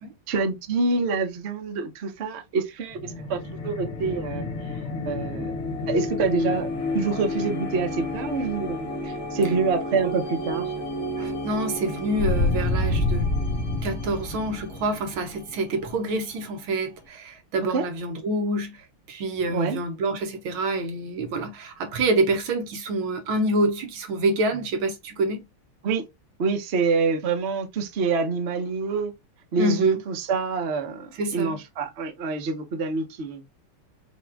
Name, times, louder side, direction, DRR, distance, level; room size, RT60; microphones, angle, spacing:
voice 1, 0.3-4.4 5.0-5.5 5.9-10.7 17.7-17.9 19.5-19.8 25.8-26.0 26.4-29.1 29.5-33.5, right 4 dB, 45° right, 0.9 m, -26 dB
sound 1, 2.9-16.4, left 2 dB, 70° left, 2.2 m, -29 dB
voice 2, 11.2-13.3 13.8-25.4 29.6-30.0 31.1-31.6, right 2 dB, 70° right, 1.9 m, -27 dB
6.1 x 2.4 x 3.4 m
omnidirectional pair, 2.3 m